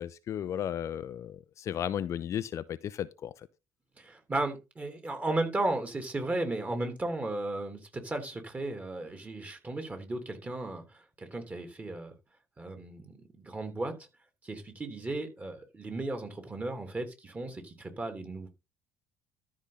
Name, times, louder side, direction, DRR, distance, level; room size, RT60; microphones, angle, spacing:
voice 1, 0.0-3.5, left 10 dB, 50° left, 0.7 m, -35 dB
voice 2, 4.0-12.1 12.6-13.9 14.4-18.5, right 2 dB, 25° right, 3.1 m, -35 dB
13.0 x 5.1 x 4.0 m
hypercardioid pair, 55°, 7 cm